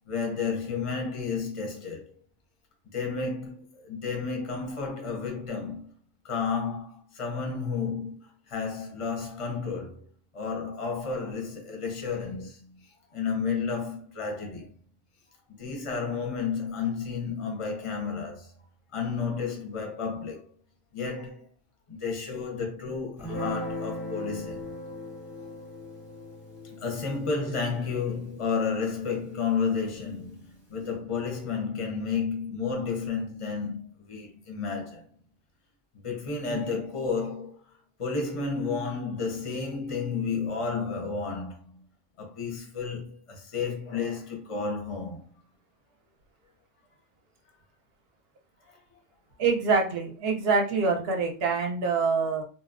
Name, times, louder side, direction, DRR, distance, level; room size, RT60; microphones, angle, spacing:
voice 1, 0.1-2.1 2.9-5.9 6.2-10.1 10.3-14.7 15.5-18.5 18.9-20.5 20.9-21.5 21.9-24.7 26.6-35.1 36.0-37.6 38.0-41.9 42.2-45.2 48.7-48.8, left 5 dB, 35° left, 0.5 m, -32 dB
Guitar, 23.2-29.8, left 1 dB, ahead, 0.6 m, -39 dB
voice 2, 49.4-52.4, right 4 dB, 60° right, 0.7 m, -25 dB
2.7 x 2.0 x 2.4 m
omnidirectional pair, 1.3 m